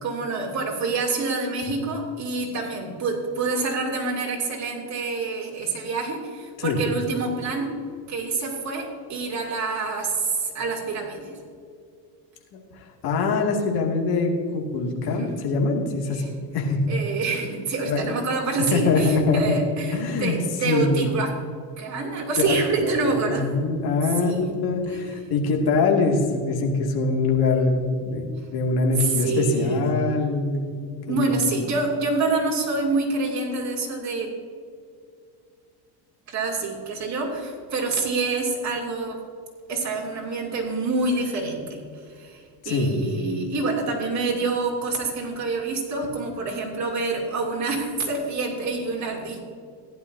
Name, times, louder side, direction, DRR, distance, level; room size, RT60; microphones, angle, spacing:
voice 1, 0.0-7.8 8.1-11.3 15.0-15.4 16.1-16.3 16.9-21.3 21.8-23.5 24.2-24.5 24.9-25.0 29.0-29.9 31.1-34.3 36.3-39.2 39.7-49.4, right 3 dB, 35° right, -1 dB, 2.8 m, -27 dB
voice 2, 12.5-16.2 16.5-16.8 17.8-18.1 18.7-19.6 19.9-20.4 20.6-21.0 22.4-30.8 31.1-31.2 42.6-42.9, left 3 dB, 45° left, 0 dB, 2.3 m, -23 dB
15.5 x 11.0 x 2.7 m, 2.2 s
supercardioid pair, 125°, 49 cm